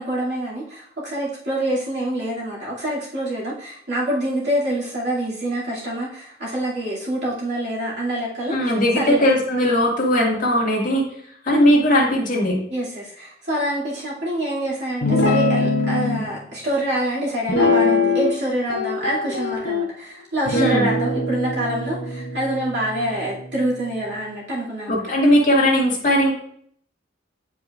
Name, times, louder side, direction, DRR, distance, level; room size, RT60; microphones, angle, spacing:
voice 1, 0.0-8.6 9.0-9.3 12.7-25.0, right 1 dB, 65° right, -6 dB, 2.4 m, -26 dB
voice 2, 8.5-11.1 11.5-12.6 20.5-20.9 24.9-26.3, equal, 45° left, -2 dB, 2.0 m, -18 dB
Guitar, 15.0-16.2 17.5-18.4 18.7-19.9 20.5-23.9, left 3 dB, 65° left, 1.2 m, -22 dB
9.8 x 4.9 x 2.4 m, 0.65 s
head